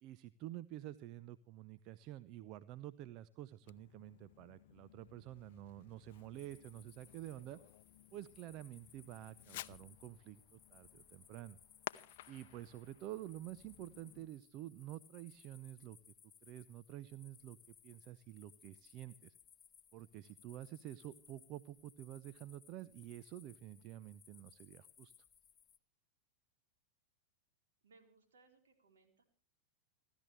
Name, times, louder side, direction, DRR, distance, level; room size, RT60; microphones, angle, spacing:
voice 1, 0.0-7.6 8.1-11.6 12.3-16.0 16.4-17.6 17.8-19.3 19.9-25.1, right 13 dB, 40° right, 15 dB, 0.7 m, -49 dB
Fireworks, 3.6-14.3, left 14 dB, 50° left, 0.7 m, -55 dB
sound 1, 6.3-25.8, left 7 dB, 20° left, 0.9 m, -64 dB
voice 2, 27.8-29.2, right 3 dB, 65° right, 4 dB, 4.2 m, -67 dB
30.0 x 12.5 x 3.3 m, 0.40 s
figure-of-eight pair, 90°, 0 cm